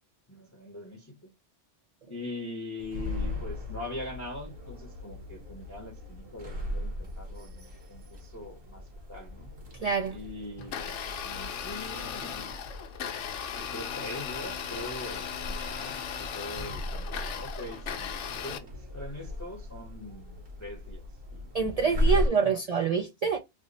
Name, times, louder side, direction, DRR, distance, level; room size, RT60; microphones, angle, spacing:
voice 1, 0.3-1.1 2.1-8.8 9.1-9.5 10.1-12.6 13.6-21.0 21.3-21.5 22.0-22.2, left 1 dB, 20° left, 0.6 m, -42 dB
sound 1, 2.8-22.3, left 1 dB, 55° right, 1.1 m, -37 dB
voice 2, 9.7-10.2 21.5-23.4, right 6 dB, 75° right, 0.3 m, -26 dB
Domestic sounds home sounds, 10.6-18.6, left 7 dB, 75° left, 1.0 m, -37 dB
3.4 x 2.0 x 3.8 m
omnidirectional pair, 1.2 m